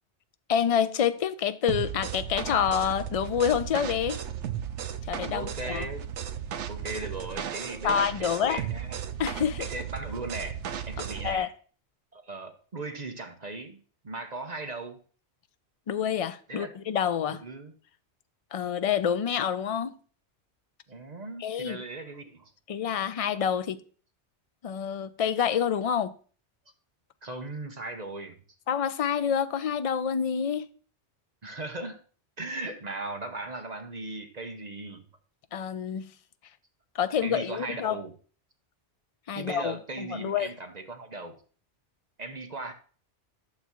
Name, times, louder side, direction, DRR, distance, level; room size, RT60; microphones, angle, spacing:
voice 1, 0.5-4.2 5.1-5.9 7.8-8.6 9.2-9.6 11.0-11.5 15.9-17.4 18.5-19.9 21.4-21.8 22.7-23.8 24.6-26.1 28.7-30.7 35.5-36.1 36.9-38.0 39.3-40.5, left 8 dB, 50° left, 0.4 m, -27 dB
sound 1, 1.7-11.4, right 9 dB, 85° right, 1.0 m, -35 dB
voice 2, 5.3-6.1 6.7-9.1 9.6-10.6 10.9-11.5 12.1-15.0 16.5-16.7 17.3-17.7 20.9-22.5 27.2-28.4 31.4-32.0 32.4-35.0 37.2-38.1 39.4-41.4 42.2-42.7, right 2 dB, 40° right, 0.9 m, -38 dB
11.5 x 6.8 x 3.0 m
omnidirectional pair, 1.2 m